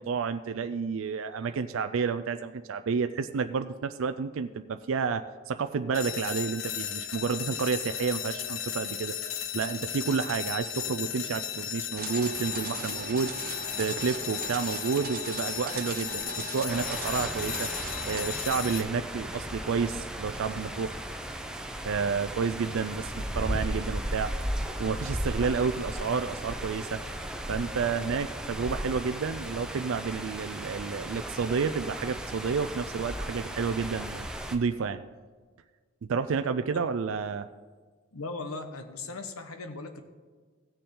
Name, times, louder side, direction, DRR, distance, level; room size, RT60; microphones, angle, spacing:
voice 1, 0.0-9.2 9.5-13.3 13.8-17.7 18.1-21.0 21.8-24.3 24.8-27.0 27.5-35.0 36.1-37.5, right 5 dB, 65° right, 9 dB, 0.4 m, -30 dB
sound 1, 5.9-18.8, left 10 dB, 65° left, 0.8 m, -35 dB
sound 2, 12.0-18.3, right 5 dB, 40° right, 0.8 m, -39 dB
sound 3, 16.7-34.6, equal, 5° right, 0.7 m, -36 dB
voice 2, 38.1-40.0, left 3 dB, 85° left, 6 dB, 1.1 m, -38 dB
17.0 x 6.8 x 3.8 m, 1.5 s
head